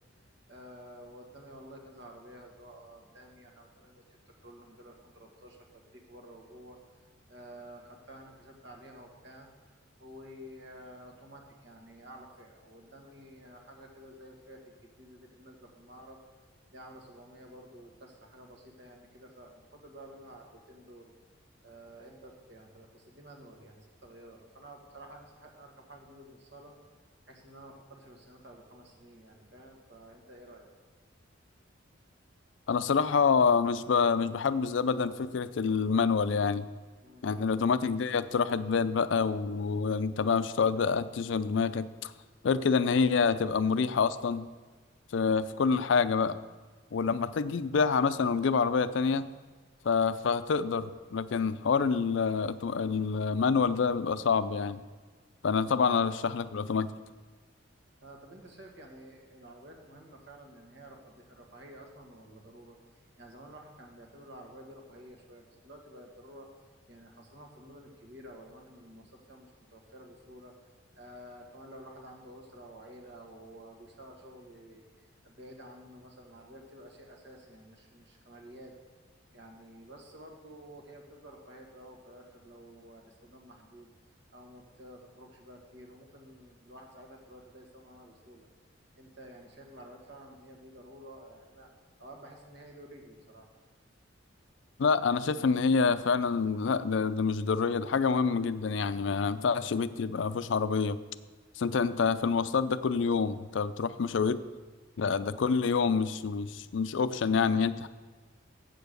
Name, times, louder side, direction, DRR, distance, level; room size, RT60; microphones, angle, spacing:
voice 1, 0.5-4.2 4.4-6.8 7.3-9.5 10.0-14.6 15.0-16.2 16.7-21.1 21.6-26.7 27.2-30.7 37.0-37.3 58.0-62.8 63.2-66.5 66.9-70.5 71.0-78.7 79.3-83.9 84.3-88.5 89.0-91.7 92.0-93.5, right 1 dB, 65° right, 1 dB, 1.7 m, -51 dB
voice 2, 32.7-36.7 37.2-42.1 42.4-44.5 45.1-46.4 46.9-49.3 49.8-54.8 55.4-56.9 94.8-101.0 101.6-104.4 105.0-107.9, left 5 dB, 65° left, 14 dB, 0.4 m, -27 dB
8.4 x 6.9 x 6.6 m, 1.4 s
head